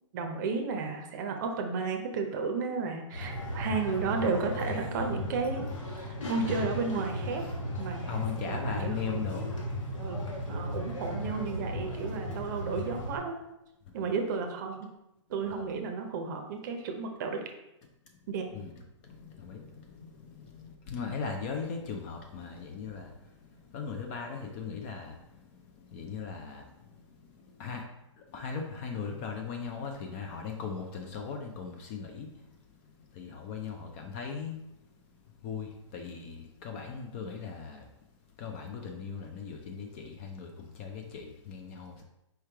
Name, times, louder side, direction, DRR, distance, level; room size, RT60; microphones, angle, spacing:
voice 1, 0.1-7.4 7.8-9.0 10.0-13.4 13.9-14.9 15.3-17.4 18.3-18.5, right 4 dB, 40° right, 4 dB, 0.6 m, -33 dB
sound 1, 3.1-13.2, equal, 85° left, 1.3 m, -35 dB
voice 2, 8.1-9.5 15.5-15.6 18.5-18.7 19.1-23.1 23.4-25.3 25.8-26.9 27.6-27.9 28.3-32.3 33.1-34.6 35.4-37.8 38.4-42.0, left 6 dB, 25° left, 3 dB, 0.4 m, -38 dB
4.6 x 3.2 x 3.4 m, 0.89 s
hypercardioid pair, 150°, 16 cm